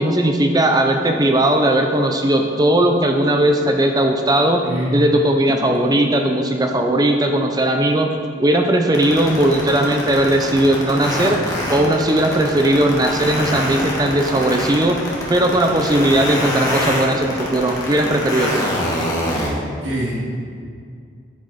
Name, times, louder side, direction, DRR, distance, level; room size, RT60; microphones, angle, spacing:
voice 1, 0.0-4.6 4.9-8.1 8.4-11.4 11.7-15.0 15.3-18.7, right 1 dB, 20° right, 3 dB, 0.6 m, -17 dB
voice 2, 4.6-5.0 19.6-20.3, equal, 80° right, -4 dB, 2.2 m, -25 dB
sound 1, 8.9-19.5, left 1 dB, 20° left, 2.0 m, -24 dB
9.8 x 9.7 x 4.2 m, 2.2 s
head